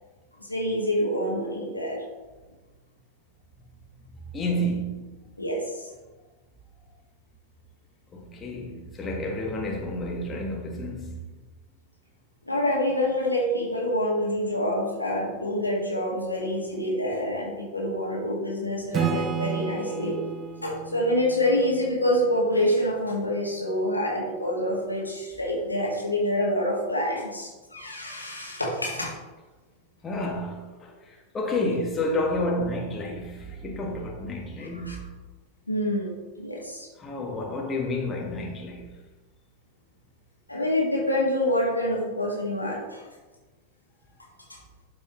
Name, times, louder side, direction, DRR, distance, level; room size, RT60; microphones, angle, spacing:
voice 1, 0.4-2.0 5.4-5.9 12.5-20.2 20.6-29.1 34.6-35.0 35.7-36.1 36.4-36.9 40.5-43.1 44.5-44.6, left 1 dB, 85° left, 2.0 m, -27 dB
voice 2, 4.3-5.0 8.1-11.2 30.0-35.0 37.0-38.9, left 1 dB, 20° left, 1.5 m, -30 dB
Acoustic guitar / Strum, 18.9-22.5, right 7 dB, 25° right, 1.2 m, -32 dB
12.0 x 5.3 x 3.1 m
figure-of-eight pair, 90°, 0 cm